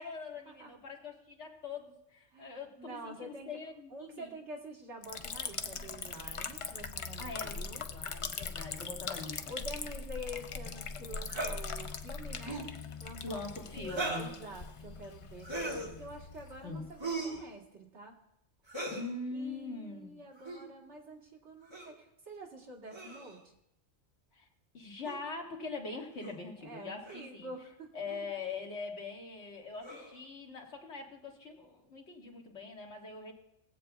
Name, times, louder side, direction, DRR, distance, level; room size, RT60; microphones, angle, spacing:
voice 1, 0.0-4.3 7.2-9.5 13.2-14.3 16.6-16.9 18.9-20.2 24.3-24.5 24.7-27.5 27.9-33.3, left 3 dB, 85° left, 1 dB, 1.8 m, -43 dB
voice 2, 2.3-3.5 3.9-7.8 9.5-12.7 13.0-13.4 13.7-18.1 19.3-23.4 26.6-27.9, right 1 dB, 85° right, 1 dB, 1.7 m, -47 dB
Liquid, 5.0-17.5, left 5 dB, 55° left, 0.3 m, -41 dB
sound 1, 11.3-11.5 12.4-12.7 13.9-14.3 15.4-15.9 17.0-17.4 18.7-19.1 20.4-20.6 21.7-21.9 22.9-23.4 25.0-25.2 26.2-26.3 27.0-27.3 28.1-28.2 29.8-30.2, right 2 dB, 25° right, 1.6 m, -38 dB
20.5 x 8.0 x 2.3 m, 0.83 s
omnidirectional pair, 1.2 m